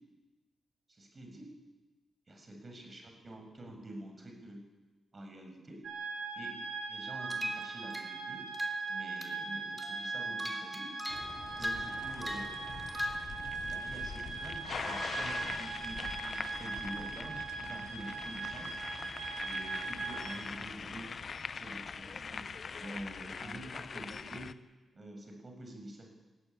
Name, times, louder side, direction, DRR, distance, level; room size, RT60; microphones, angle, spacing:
voice 1, 0.9-1.5 2.3-4.6 5.1-5.8 6.4-6.5 6.9-8.5 8.9-10.9 11.6-12.6 13.6-18.8 19.4-21.1 21.5-22.4 22.8-24.5 24.9-26.1, right 1 dB, 40° right, 3 dB, 7.0 m, -47 dB
sound 1, 5.8-20.4, right 4 dB, 75° right, 5.3 m, -40 dB
sound 2, 7.2-8.2 8.5-8.9 9.2-9.4 9.8-13.2, equal, ahead, 3.6 m, -40 dB
sound 3, 11.1-24.5, left 5 dB, 55° left, 0.8 m, -43 dB
19.5 x 15.0 x 9.8 m, 1.2 s
cardioid pair, 65°, 0 cm